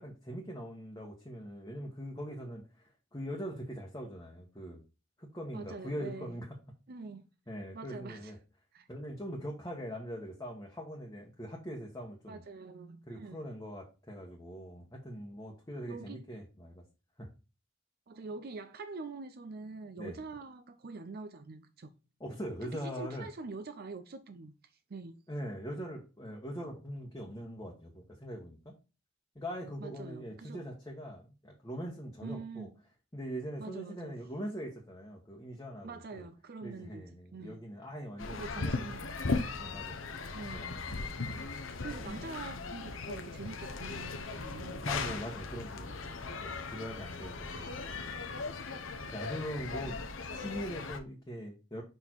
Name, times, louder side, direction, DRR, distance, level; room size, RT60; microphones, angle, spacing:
voice 1, 0.0-4.8 5.2-6.5 7.5-8.4 8.9-12.4 13.1-16.8 17.2-17.3 20.0-20.2 22.2-23.3 25.3-28.7 29.3-32.7 33.1-36.3 36.6-38.9 39.6-40.0 40.3-41.1 42.0-42.3 44.6-47.7 48.0-48.2 49.1-50.0 50.3-51.8, equal, 20° left, 1.1 m, -42 dB
voice 2, 5.5-6.4 6.9-7.3 7.7-8.3 8.7-8.9 12.3-13.4 15.9-16.2 18.1-22.0 22.6-24.5 24.9-25.2 29.8-30.6 32.2-32.7 33.6-34.1 35.8-37.1 37.3-37.6 38.3-39.2 40.3-40.9 41.2-41.5 41.8-44.9 46.0-46.2 47.8-47.9 49.8-49.9, right 4 dB, 50° right, 0.5 m, -45 dB
sound 1, 38.2-51.0, left 3 dB, 85° left, 0.9 m, -38 dB
5.3 x 4.4 x 4.4 m
head